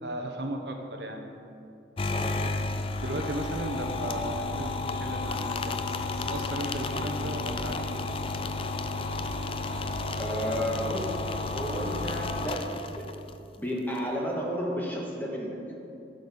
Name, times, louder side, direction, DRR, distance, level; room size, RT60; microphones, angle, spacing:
voice 1, 0.0-1.3 3.0-4.7 5.0-5.7 6.3-7.8, right 1 dB, 65° right, 3 dB, 1.0 m, -35 dB
sound 1, 2.0-13.3, left 3 dB, 30° left, 0.4 m, -32 dB
voice 2, 2.1-2.6 10.2-11.1 11.5-13.1 13.6-15.6, equal, 10° left, -3 dB, 1.5 m, -32 dB
sound 2, 2.9-12.3, left 1 dB, 55° left, 2.5 m, -44 dB
13.5 x 6.7 x 5.6 m, 2.7 s
head